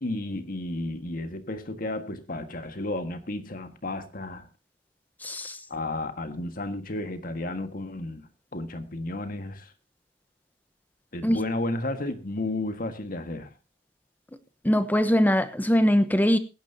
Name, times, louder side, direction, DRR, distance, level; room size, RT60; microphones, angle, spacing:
voice 1, 0.0-4.5 5.7-9.7 11.1-13.5, left 2 dB, 55° left, 8 dB, 1.7 m, -33 dB
voice 2, 14.6-16.4, equal, 10° left, 11 dB, 1.0 m, -21 dB
21.5 x 10.5 x 2.8 m, 0.29 s
head